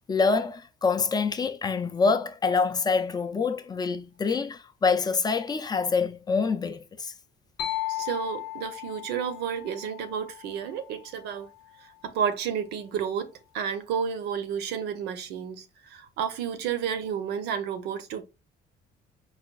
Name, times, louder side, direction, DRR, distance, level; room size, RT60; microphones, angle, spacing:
voice 1, 0.1-7.1, left 4 dB, 25° left, 0.4 m, -26 dB
sound 1, 7.6-11.3, left 14 dB, 85° left, 0.7 m, -36 dB
voice 2, 7.9-11.5 11.8-18.2, right 8 dB, 80° right, 0.6 m, -31 dB
4.8 x 2.2 x 2.2 m
cardioid pair, 110°, 17 cm